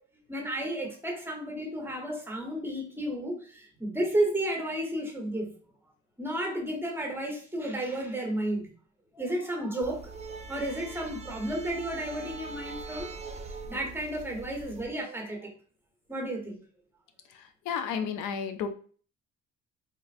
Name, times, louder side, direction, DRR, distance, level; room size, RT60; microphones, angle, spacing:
voice 1, 0.3-5.5 6.2-8.7 9.1-10.1 10.5-13.1 13.7-15.5 16.1-16.6, right 1 dB, 5° right, 1 dB, 1.1 m, -32 dB
sound 1, 9.8-14.9, right 4 dB, 25° right, 0.4 m, -42 dB
voice 2, 17.3-18.7, left 7 dB, 85° left, 7 dB, 0.5 m, -33 dB
4.1 x 2.4 x 2.5 m, 0.43 s
cardioid pair, 90°, 30 cm